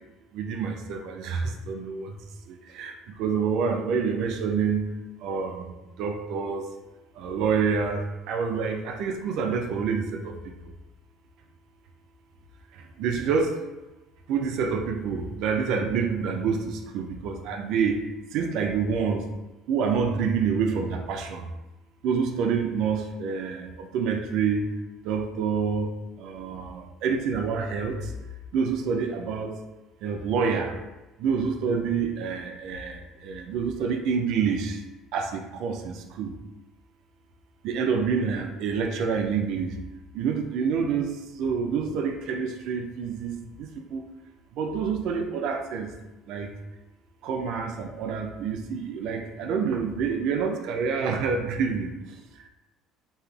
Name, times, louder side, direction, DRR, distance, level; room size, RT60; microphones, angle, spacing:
voice 1, 0.3-2.2 2.5-4.9 5.2-5.7 6.0-6.7 7.2-10.4 12.7-13.5 14.3-18.0 18.3-19.3 19.7-21.5 22.0-24.7 25.0-25.9 26.2-28.1 28.5-29.6 30.0-30.8 31.2-34.8 35.1-36.4 37.6-39.8 40.1-44.0 44.5-45.9 46.3-46.5 47.2-52.2, right 6 dB, 65° right, 5 dB, 0.3 m, -27 dB
2.7 x 2.4 x 2.3 m, 1.1 s
hypercardioid pair, 70°, 0 cm